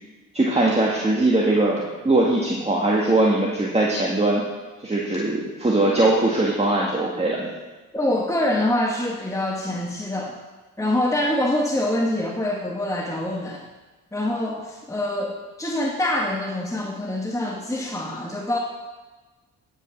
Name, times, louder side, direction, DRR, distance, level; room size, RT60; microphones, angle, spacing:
voice 1, 0.3-4.4 4.8-7.5, right 2 dB, 15° right, -3 dB, 1.8 m, -21 dB
voice 2, 7.9-10.4 10.8-13.6 14.1-18.6, left 1 dB, 10° left, -1 dB, 1.4 m, -25 dB
10.5 x 5.6 x 6.0 m, 1.2 s
supercardioid pair, 50°, 37 cm